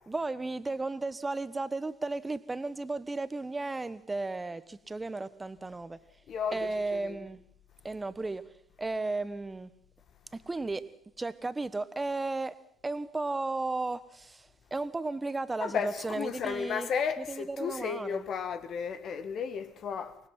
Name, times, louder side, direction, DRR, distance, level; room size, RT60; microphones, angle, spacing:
voice 1, 0.1-6.0 6.5-7.4 7.8-8.4 8.8-9.7 10.3-10.8 11.2-12.5 12.8-16.9 17.2-18.2, right 3 dB, 20° right, 1.2 m, -34 dB
voice 2, 6.3-7.2 15.6-20.2, left 6 dB, 50° left, 1.5 m, -34 dB
24.5 x 20.0 x 5.8 m
figure-of-eight pair, 55°, 0 cm